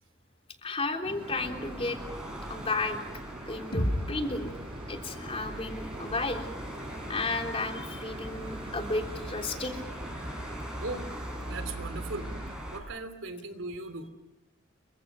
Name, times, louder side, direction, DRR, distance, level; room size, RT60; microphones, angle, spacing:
voice 1, 0.6-2.0 2.5-3.0 3.5-4.5 4.9-6.5 7.1-9.7, left 3 dB, 30° left, 4 dB, 3.3 m, -33 dB
sound 1, 1.0-12.6, right 1 dB, 25° right, 1.7 m, -44 dB
sound 2, 1.2-12.8, right 1 dB, 5° right, 6.5 m, -41 dB
sound 3, 3.7-7.7, equal, 50° left, 7.0 m, -36 dB
voice 2, 11.4-12.3 12.7-14.1, right 2 dB, 90° right, 9 dB, 3.2 m, -38 dB
28.5 x 24.5 x 6.3 m, 0.96 s
head